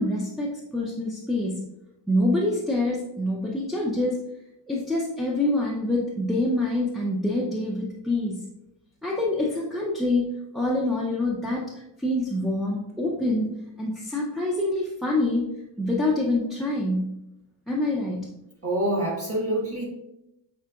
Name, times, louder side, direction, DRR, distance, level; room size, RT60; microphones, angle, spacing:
voice 1, 0.0-1.7 2.1-4.2 4.7-8.4 9.0-13.5 13.8-15.5 15.8-17.2 17.7-18.3, left 1 dB, ahead, -4 dB, 0.3 m, -26 dB
voice 2, 18.6-19.8, right 1 dB, 30° right, -3 dB, 1.4 m, -26 dB
6.1 x 3.7 x 2.3 m, 0.87 s
wide cardioid pair, 140°, 48 cm